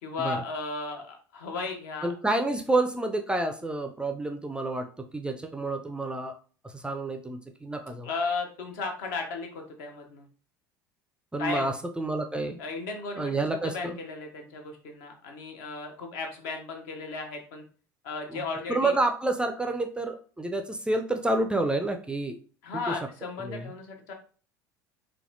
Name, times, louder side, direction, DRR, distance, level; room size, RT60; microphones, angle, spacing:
voice 1, 0.0-2.1 8.0-10.3 11.4-11.7 12.6-17.6 18.0-18.9 22.6-24.1, left 4 dB, 60° left, 3 dB, 0.8 m, -35 dB
voice 2, 2.0-4.9 5.1-6.4 6.6-8.1 11.3-12.6 13.2-14.0 18.3-18.4 18.7-22.4 22.7-23.0 23.4-23.7, right 2 dB, 10° right, 5 dB, 0.4 m, -29 dB
4.0 x 2.2 x 2.6 m, 0.40 s
figure-of-eight pair, 65°, 11 cm